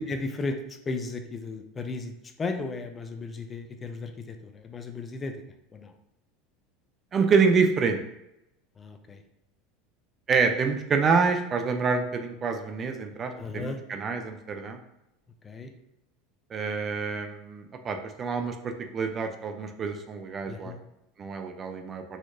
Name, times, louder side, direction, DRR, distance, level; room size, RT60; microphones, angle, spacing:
voice 1, 0.0-5.4 5.7-5.9 8.8-9.2 13.3-13.8 15.4-15.7 20.5-20.8, left 3 dB, 25° left, 7 dB, 0.5 m, -35 dB
voice 2, 7.1-8.0 10.3-14.8 16.5-20.7 21.2-22.0, right 5 dB, 35° right, 6 dB, 0.5 m, -27 dB
4.2 x 2.9 x 2.6 m, 0.86 s
hypercardioid pair, 100°, 0 cm